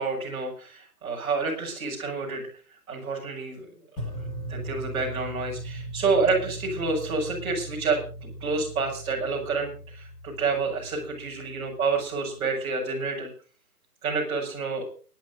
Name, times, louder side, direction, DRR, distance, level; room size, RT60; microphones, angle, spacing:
voice 1, 0.0-2.5 2.9-3.7 4.5-13.3 14.0-14.9, right 4 dB, 10° right, -6 dB, 5.9 m, -28 dB
sound 1, 4.0-12.1, right 1 dB, 10° left, 1.8 m, -39 dB
29.5 x 11.5 x 2.6 m, 0.38 s
figure-of-eight pair, 160°, 48 cm